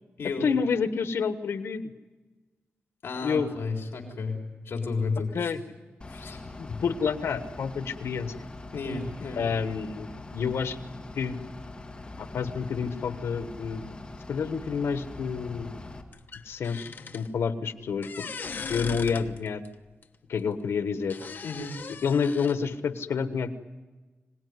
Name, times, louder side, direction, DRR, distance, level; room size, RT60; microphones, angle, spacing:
voice 1, 0.4-1.9 3.2-3.5 5.3-5.6 6.6-8.3 9.4-10.1 10.3-10.8 11.2-11.4 12.2-13.9 14.3-15.8 16.4-18.3 18.7-19.6 20.3-21.2 22.0-23.5, left 6 dB, 85° left, 10 dB, 1.3 m, -29 dB
voice 2, 3.0-4.4 4.7-5.5 6.1-6.4 6.7-6.8 8.7-9.4 21.4-21.7, left 4 dB, 70° left, 1 dB, 3.8 m, -32 dB
Bus / Idling, 6.0-16.0, left 2 dB, 25° left, 2.1 m, -43 dB
sound 1, 16.1-17.3 18.0-19.7 20.0-20.1 21.1-22.5, left 5 dB, 50° left, 1.1 m, -39 dB
25.5 x 18.5 x 9.6 m, 1.3 s
wide cardioid pair, 145°, 4 cm